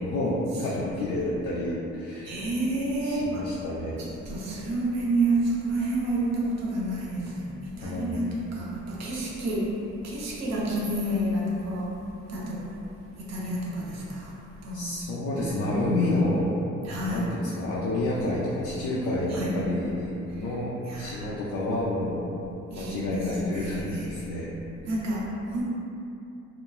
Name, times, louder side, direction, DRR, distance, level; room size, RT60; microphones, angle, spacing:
voice 1, 0.0-2.4 3.0-4.0 7.8-8.2 14.7-16.6 17.1-22.3 22.8-24.5, left 1 dB, 85° left, -6 dB, 0.5 m, -29 dB
voice 2, 2.2-3.5 4.2-7.5 7.8-12.0 12.3-12.7 13.2-14.3 14.6-14.9 15.3-15.4 16.8-17.3 19.3-19.6 20.9-21.2 22.7-23.2 23.4-24.1 24.9-25.7, right 1 dB, 60° right, -5 dB, 0.7 m, -29 dB
2.9 x 2.2 x 2.3 m, 2.8 s
cardioid pair, 90°, 30 cm